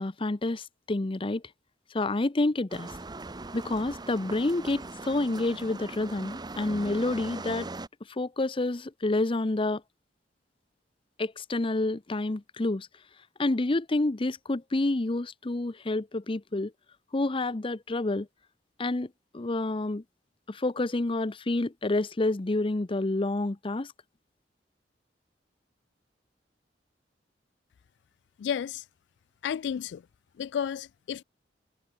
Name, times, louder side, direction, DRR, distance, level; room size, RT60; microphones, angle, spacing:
voice 1, 0.0-1.4 1.9-2.9 3.5-7.7 8.2-9.8 11.2-12.9 13.4-16.7 17.1-18.3 18.8-19.1 19.3-20.0 20.5-23.9, left 2 dB, 30° left, 0.7 m, -28 dB
sound 1, 2.7-7.9, right 2 dB, 25° right, 0.9 m, -40 dB
voice 2, 28.4-28.8 29.4-30.0 30.4-31.2, left 8 dB, 70° left, 0.3 m, -32 dB
head